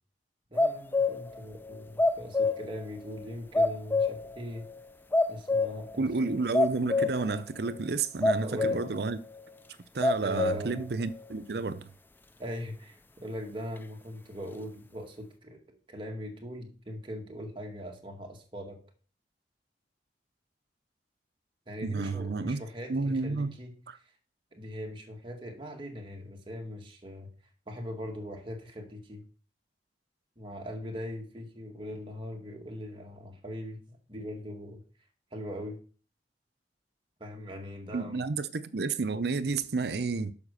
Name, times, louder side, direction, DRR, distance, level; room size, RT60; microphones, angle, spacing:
voice 1, 0.5-4.7 5.3-6.0 8.3-8.8 10.2-10.8 12.4-18.8 21.7-23.7 24.5-27.3 27.7-29.2 30.4-34.8 35.3-35.8 37.2-38.3, equal, 30° right, 2.0 m, -41 dB
sound 1, 0.6-1.4 1.6-2.8 3.1-3.2 3.5-4.4 4.7-4.8 5.1-6.0 6.3-7.4 7.7-7.8 8.2-9.0 9.4-9.5 10.0-10.8, left 2 dB, 10° left, 0.5 m, -27 dB
voice 2, 6.0-9.2 9.9-11.9 21.8-22.6 22.9-23.5 23.9-24.0 37.9-40.3, right 3 dB, 60° right, 0.6 m, -31 dB
12.0 x 4.9 x 6.7 m
head